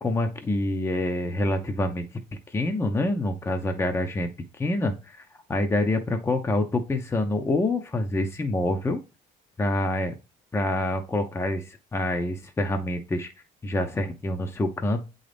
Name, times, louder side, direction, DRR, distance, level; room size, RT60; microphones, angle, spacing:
voice 1, 0.0-2.0 2.5-4.3 4.6-5.2 5.5-9.0 9.6-10.1 10.5-13.3 13.6-15.1, left 2 dB, 15° left, 5 dB, 0.6 m, -26 dB
7.9 x 3.9 x 3.3 m, 0.28 s
cardioid pair, 110°, 17 cm